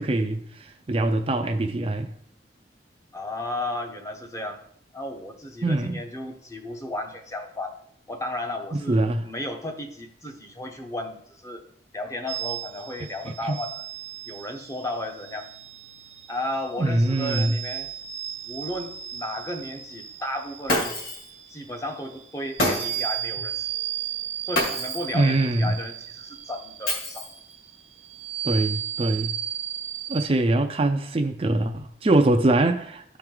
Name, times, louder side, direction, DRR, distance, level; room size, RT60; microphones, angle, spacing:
voice 1, 0.0-2.1 5.6-6.0 8.7-9.3 13.4-13.6 16.8-17.6 25.1-25.8 28.4-29.4 30.1-33.0, right 2 dB, 30° right, 0.4 m, -23 dB
voice 2, 3.1-4.6 4.9-7.8 8.1-11.6 11.9-13.8 14.3-15.5 16.3-17.9 18.4-21.0 21.5-23.7 24.4-27.3 29.0-29.2, left 1 dB, 15° left, 0.8 m, -34 dB
sound 1, 12.3-30.3, right 11 dB, 85° right, 1.1 m, -35 dB
Shatter, 20.7-21.3 22.6-23.2 24.5-25.1 26.9-27.5, left 1 dB, 50° left, 2.4 m, -27 dB
13.5 x 4.5 x 3.8 m
head